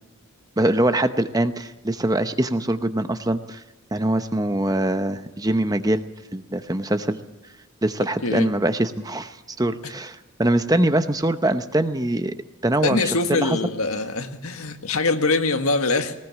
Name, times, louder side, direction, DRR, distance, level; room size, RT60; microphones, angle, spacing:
voice 1, 0.6-3.6 3.9-6.0 6.3-7.2 7.8-12.3 12.6-13.6, right 1 dB, 15° right, 10 dB, 0.8 m, -23 dB
voice 2, 12.8-16.1, left 3 dB, 80° left, 7 dB, 1.7 m, -23 dB
19.5 x 19.5 x 7.4 m, 1.1 s
head